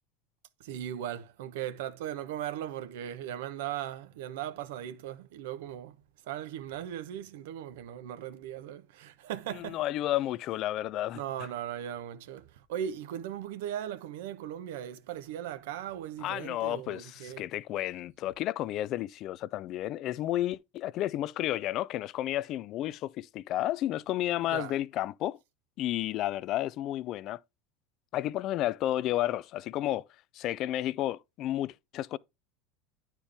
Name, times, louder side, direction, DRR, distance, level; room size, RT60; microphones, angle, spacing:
voice 1, 0.6-6.0 6.2-9.8 11.1-17.5 24.5-24.8, right 10 dB, 75° right, 0.9 m, -38 dB
voice 2, 9.5-11.2 16.2-25.4 25.8-27.4 28.1-30.0 30.3-32.2, left 14 dB, 50° left, 0.4 m, -32 dB
9.9 x 4.5 x 3.4 m
hypercardioid pair, 100°, 0 cm